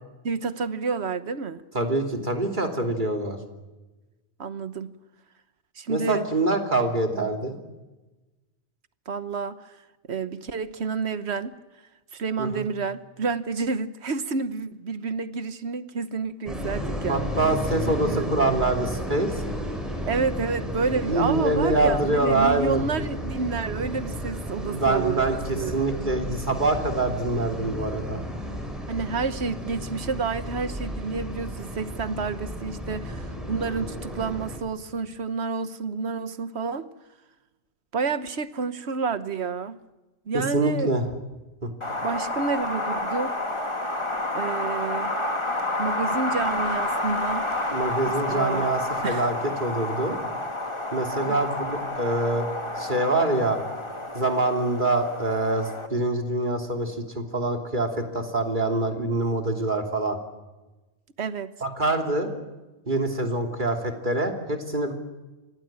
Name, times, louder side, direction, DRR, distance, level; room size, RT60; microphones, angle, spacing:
voice 1, 0.2-1.6 4.4-4.9 5.8-6.3 9.1-9.6 10.1-11.5 12.1-17.3 17.9-18.3 20.0-25.8 28.9-36.9 37.9-39.8 40.3-40.9 42.0-43.3 44.3-45.2 45.8-47.7 48.1-48.7 49.0-49.3 51.3-51.4 61.2-61.5, right 4 dB, 70° right, 12 dB, 1.4 m, -29 dB
voice 2, 1.7-3.4 5.9-7.5 12.4-12.6 17.1-19.3 21.0-22.8 24.7-28.2 40.3-41.0 47.7-50.2 50.9-52.5 52.8-53.6 54.1-60.2 61.6-62.3 62.9-64.9, right 2 dB, 45° right, 3 dB, 3.2 m, -25 dB
sound 1, 16.5-34.6, equal, ahead, 6.7 m, -33 dB
Wind, 41.8-55.9, left 2 dB, 25° left, 2.1 m, -29 dB
26.5 x 19.0 x 8.9 m, 1.1 s
omnidirectional pair, 1.1 m